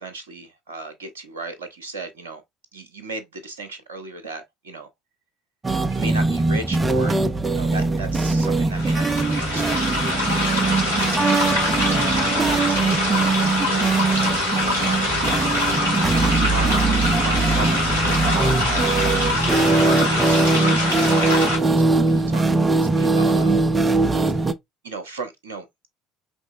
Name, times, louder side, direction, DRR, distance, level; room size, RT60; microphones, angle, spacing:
voice 1, 0.0-2.4 2.7-4.9 5.9-7.2 7.5-11.6 12.2-15.8 16.3-22.4 22.8-23.6 24.3-24.4 24.8-25.7, right 3 dB, 75° right, 0.6 m, -36 dB
sound 1, 5.6-24.5, right 3 dB, 20° right, 0.5 m, -21 dB
sound 2, 8.8-21.6, left 2 dB, 90° left, 1.2 m, -24 dB
5.3 x 3.1 x 2.6 m
figure-of-eight pair, 55°, 0 cm